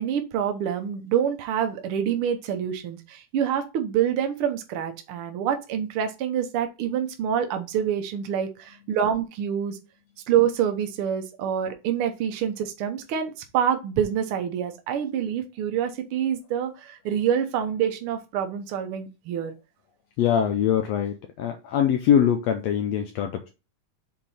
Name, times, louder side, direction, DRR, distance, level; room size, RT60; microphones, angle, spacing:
voice 1, 0.0-9.8 10.3-19.5, right 9 dB, 70° right, 1.3 m, -26 dB
voice 2, 20.2-23.5, left 9 dB, 80° left, 1.6 m, -23 dB
6.7 x 3.9 x 4.2 m
omnidirectional pair, 3.6 m